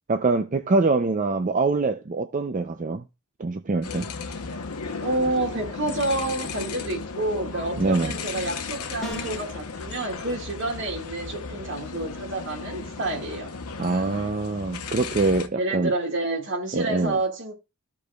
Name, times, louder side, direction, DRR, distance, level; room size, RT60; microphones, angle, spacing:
voice 1, 0.1-3.0 3.4-4.1 7.8-8.1 13.8-15.9 16.7-17.2, right 3 dB, 35° right, 0.5 m, -24 dB
sound 1, 3.8-15.5, left 4 dB, 85° left, 0.9 m, -35 dB
voice 2, 5.0-13.5 15.5-17.5, right 2 dB, 55° right, 1.8 m, -29 dB
sound 2, 9.0-9.5, right 1 dB, ahead, 2.6 m, -35 dB
14.0 x 5.1 x 2.3 m
head